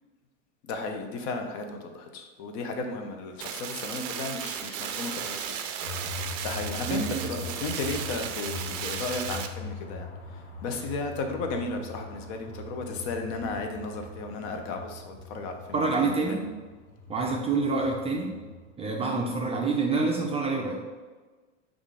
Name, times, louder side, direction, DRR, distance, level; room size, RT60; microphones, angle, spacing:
voice 1, 0.7-5.6 6.4-16.3, left 3 dB, 60° left, 4 dB, 0.8 m, -34 dB
sound 1, 3.4-9.5, right 8 dB, 85° right, 0.5 m, -35 dB
sound 2, 5.8-18.7, left 2 dB, 40° left, 1.0 m, -41 dB
voice 2, 6.9-7.3 15.7-16.5 17.1-18.4 18.8-20.8, right 3 dB, 15° right, -1 dB, 0.4 m, -27 dB
5.1 x 2.5 x 3.7 m, 1.3 s
supercardioid pair, 115°, 38 cm